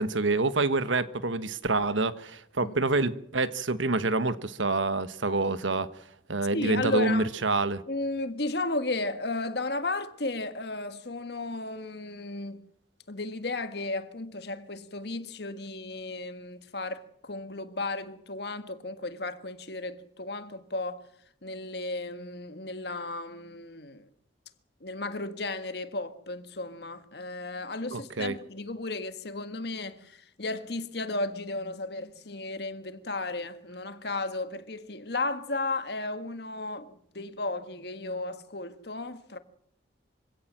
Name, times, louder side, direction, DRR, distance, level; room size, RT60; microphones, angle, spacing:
voice 1, 0.0-5.9 6.3-7.8 27.9-28.4, right 3 dB, 85° right, 1.3 m, -27 dB
voice 2, 6.5-7.3 7.9-12.6 13.1-21.1 21.4-24.1 24.8-39.4, left 2 dB, 60° left, 1.6 m, -34 dB
25.0 x 17.0 x 7.5 m
head